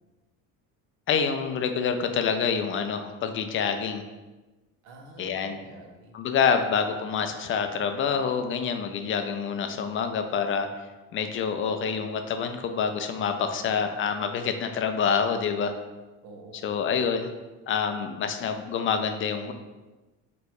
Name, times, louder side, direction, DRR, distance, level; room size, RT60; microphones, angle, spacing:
voice 1, 1.1-4.0 5.2-5.6 6.1-10.7 11.1-15.7 16.6-17.3 17.7-19.5, left 6 dB, 35° left, 7 dB, 0.4 m, -27 dB
voice 2, 4.8-6.3 13.4-13.9 16.2-16.9, right 2 dB, 80° right, 1 dB, 0.8 m, -48 dB
3.0 x 2.2 x 4.2 m, 1.2 s
supercardioid pair, 85°, 35 cm